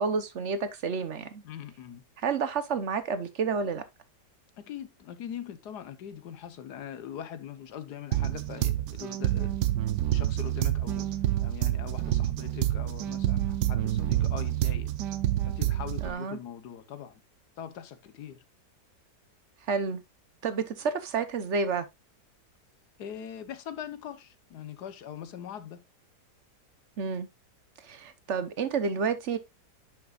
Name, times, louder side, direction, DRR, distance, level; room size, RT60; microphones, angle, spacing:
voice 1, 0.0-1.4 2.2-3.8 16.0-16.4 19.7-20.0 20.4-21.9 27.0-27.3 27.8-29.4, right 5 dB, 50° right, 1.1 m, -30 dB
voice 2, 1.4-2.0 4.6-9.5 10.1-11.1 11.4-14.9 15.4-17.1 17.6-18.4 23.0-25.8, left 9 dB, 70° left, 1.5 m, -42 dB
sound 1, 8.1-16.1, right 13 dB, 90° right, 1.3 m, -28 dB
10.5 x 6.0 x 2.4 m
omnidirectional pair, 1.8 m